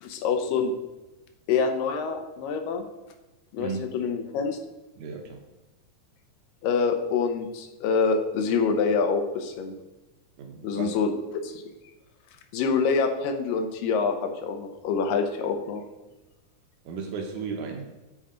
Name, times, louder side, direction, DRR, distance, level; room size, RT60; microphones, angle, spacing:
voice 1, 0.0-0.7 1.5-2.8 3.5-4.6 6.6-9.8 10.6-11.1 11.4-11.6 12.5-15.8, left 5 dB, 90° left, 5 dB, 2.5 m, -26 dB
voice 2, 5.0-5.4 10.4-10.9 16.9-17.9, right 5 dB, 70° right, 3 dB, 2.2 m, -34 dB
13.5 x 4.4 x 3.8 m, 1.1 s
omnidirectional pair, 3.8 m